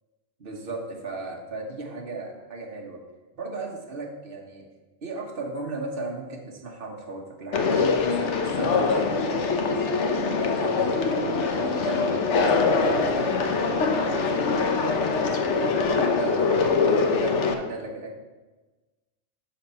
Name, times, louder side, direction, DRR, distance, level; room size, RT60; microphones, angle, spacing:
voice 1, 0.4-3.0 3.4-4.7 5.0-9.9 10.4-12.2 12.7-18.1, right 2 dB, 50° right, 0 dB, 1.5 m, -36 dB
Conversation, 7.5-17.5, left 4 dB, 90° left, 1.2 m, -23 dB
12.0 x 4.3 x 5.6 m, 1.2 s
omnidirectional pair, 1.2 m